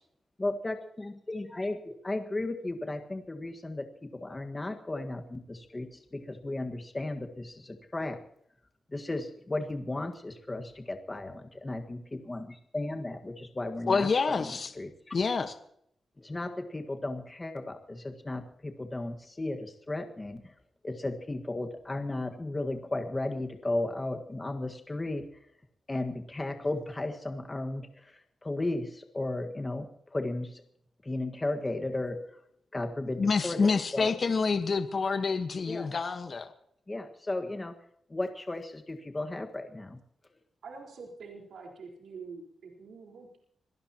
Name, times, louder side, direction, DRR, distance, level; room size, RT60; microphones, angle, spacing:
voice 1, 0.4-8.2 8.9-15.2 16.2-20.5 20.8-25.3 25.9-30.6 31.0-32.2 32.7-34.1 35.7-35.9 36.9-37.8 38.1-40.0, left 2 dB, 20° left, 5 dB, 1.6 m, -35 dB
voice 2, 13.9-14.7 15.1-15.5 33.2-36.5, left 4 dB, 45° left, 9 dB, 1.3 m, -27 dB
voice 3, 40.6-43.4, right 4 dB, 75° right, 0 dB, 4.3 m, -46 dB
26.0 x 18.0 x 3.0 m, 0.68 s
cardioid pair, 105°, 0 cm